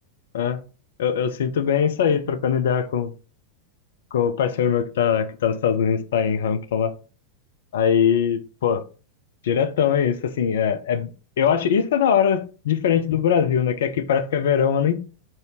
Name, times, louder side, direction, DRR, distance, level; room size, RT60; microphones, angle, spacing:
voice 1, 1.0-3.1 4.1-6.9 7.7-8.8 9.4-11.1 11.4-15.0, left 8 dB, 60° left, 0.4 m, -21 dB
2.6 x 2.6 x 3.2 m
figure-of-eight pair, 90°, 0 cm